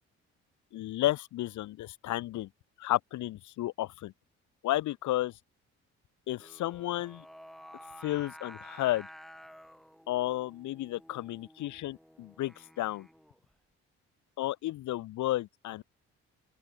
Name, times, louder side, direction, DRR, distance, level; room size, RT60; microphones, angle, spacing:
voice 1, 0.7-2.5 2.8-4.1 4.6-5.3 6.3-7.2 8.0-9.1 10.1-13.1 14.4-15.8, left 15 dB, 75° left, 1.4 m, -32 dB
Singing, 6.4-13.5, equal, ahead, 2.5 m, -52 dB
open air
supercardioid pair, 75°, 29 cm